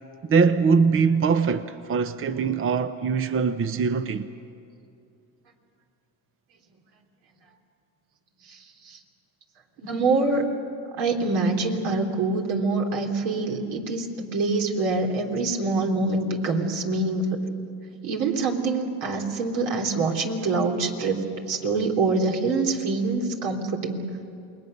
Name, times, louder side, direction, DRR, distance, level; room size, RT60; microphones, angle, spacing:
voice 1, 0.3-4.3, right 5 dB, 25° right, 0.8 m, -22 dB
voice 2, 8.5-9.0 9.8-10.4 11.0-17.4 18.0-24.1, right 3 dB, 70° right, 3.5 m, -25 dB
28.5 x 21.0 x 6.6 m
supercardioid pair, 90°, 49 cm